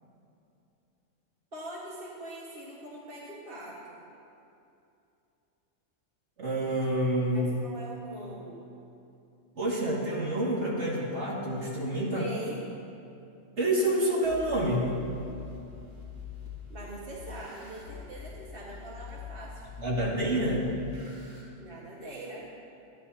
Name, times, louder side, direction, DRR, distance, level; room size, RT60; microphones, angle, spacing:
voice 1, 1.5-4.1 7.3-8.7 12.1-12.6 16.7-19.6 21.6-22.4, right 1 dB, 45° right, -5 dB, 1.8 m, -42 dB
voice 2, 6.4-7.5 9.6-12.3 13.6-14.9 19.8-20.8, right 1 dB, 65° right, -4 dB, 2.4 m, -28 dB
sound 1, 14.2-21.4, left 6 dB, 90° right, 3.5 m, -45 dB
24.5 x 10.5 x 2.8 m, 2.7 s
omnidirectional pair, 1.3 m